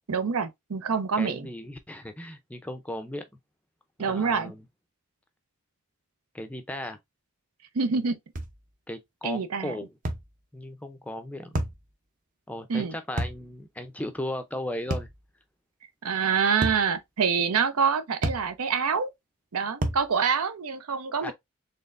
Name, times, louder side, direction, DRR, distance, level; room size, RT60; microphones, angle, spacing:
voice 1, 0.1-1.5 4.0-4.5 7.7-8.2 9.2-9.7 12.7-12.9 16.0-19.1 19.5-21.3, right 6 dB, 85° right, 0.6 m, -26 dB
voice 2, 1.2-3.2 4.0-4.7 6.3-7.0 8.9-9.9 10.5-11.6 12.5-15.1 21.2-21.3, left 1 dB, 5° left, 0.4 m, -36 dB
sound 1, 8.4-8.6 10.0-10.3 11.5-11.8 13.2-13.4 14.9-15.2 16.6-16.9 18.2-18.5 19.8-20.1, right 1 dB, 35° right, 0.6 m, -29 dB
4.2 x 3.3 x 2.5 m
head